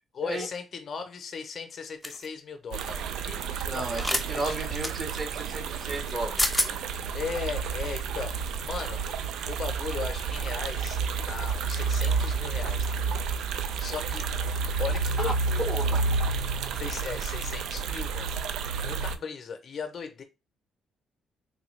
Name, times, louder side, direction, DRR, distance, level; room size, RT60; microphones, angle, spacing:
voice 1, 0.1-4.6 7.1-9.1 9.5-11.0 11.3-14.3 14.8-15.8 16.7-20.2, left 5 dB, 50° left, 0.6 m, -37 dB
sound 1, 2.0-2.3 3.9-4.2 4.8-4.9 6.1-6.2 6.4-6.7, left 1 dB, 10° left, 0.5 m, -27 dB
sound 2, 2.7-19.2, right 5 dB, 85° right, 0.3 m, -30 dB
voice 2, 3.7-6.8 15.2-15.3 15.6-16.0, right 2 dB, 30° right, 0.9 m, -34 dB
3.6 x 2.2 x 3.1 m
cardioid pair, 90°, 0 cm